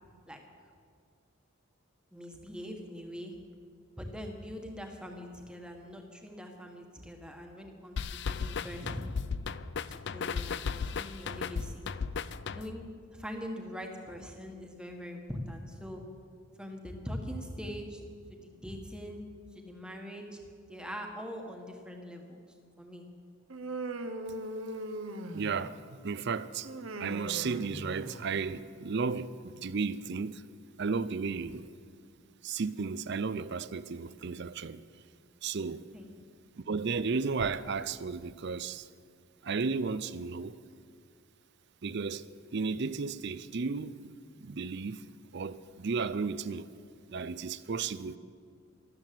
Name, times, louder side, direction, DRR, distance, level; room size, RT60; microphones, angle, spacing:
voice 1, 2.1-3.3 4.0-9.1 9.9-11.9 12.5-16.0 16.6-18.0 18.3-19.2 19.5-20.4 20.7-22.5 22.8-23.0 35.9-36.1, equal, 5° right, 1.5 m, -42 dB
sound 1, 8.0-12.9, left 5 dB, 50° left, 0.4 m, -35 dB
Human voice, 23.5-25.8 26.6-28.5, right 1 dB, 70° right, 1.0 m, -40 dB
voice 2, 25.3-26.7 27.0-30.4 30.8-31.7 32.4-34.8 35.4-35.9 36.6-38.9 39.4-40.6 41.8-44.1 44.4-45.0 45.3-46.7 47.1-48.2, right 4 dB, 50° right, 0.5 m, -34 dB
14.0 x 12.5 x 7.6 m
head